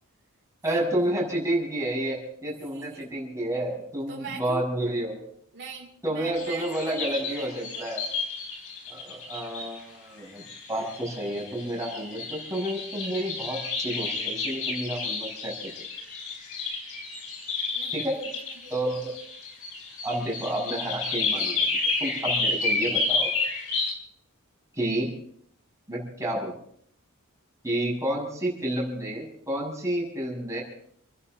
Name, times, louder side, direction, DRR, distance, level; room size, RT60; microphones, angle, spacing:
voice 1, 0.6-5.2 6.0-8.0 8.9-15.9 17.9-18.2 18.7-19.1 20.0-23.3 24.7-25.1 25.9-26.5 27.6-30.6, right 1 dB, 15° right, -2 dB, 6.4 m, -30 dB
voice 2, 2.5-3.1 4.1-4.6 5.5-7.8 9.1-9.2 17.7-18.7, right 5 dB, 50° right, -1 dB, 2.7 m, -42 dB
sound 1, 6.3-9.8 10.4-23.9, left 3 dB, 70° left, 4.2 m, -31 dB
29.5 x 11.0 x 3.9 m, 0.66 s
head